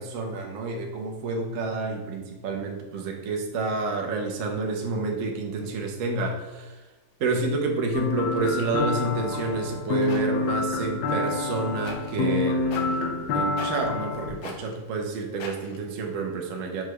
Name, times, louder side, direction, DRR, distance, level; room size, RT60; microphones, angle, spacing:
voice 1, 0.0-6.8 7.2-16.8, right 3 dB, 65° right, 2 dB, 0.8 m, -29 dB
sound 1, 1.1-2.2 2.6-2.7 2.9-6.0 6.3-10.5 11.0-16.2, left 3 dB, 65° left, 1.1 m, -48 dB
background music, 7.9-14.3, left 3 dB, 85° left, 1.3 m, -28 dB
4.9 x 2.2 x 4.6 m, 1.2 s
omnidirectional pair, 1.9 m